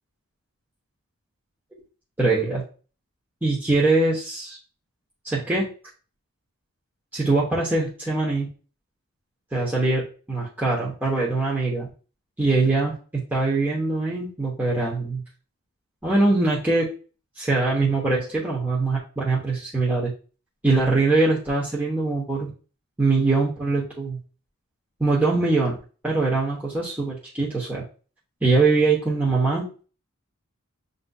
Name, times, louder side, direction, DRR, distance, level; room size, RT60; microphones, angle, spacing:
voice 1, 2.2-2.6 3.4-4.6 5.2-5.7 7.1-8.5 9.5-11.9 12.4-15.2 16.0-16.9 17.4-20.1 20.6-22.5 23.0-24.2 25.0-25.8 26.0-27.8 28.4-29.7, right 3 dB, 10° right, -6 dB, 0.9 m, -22 dB
7.3 x 2.7 x 2.3 m, 0.37 s
head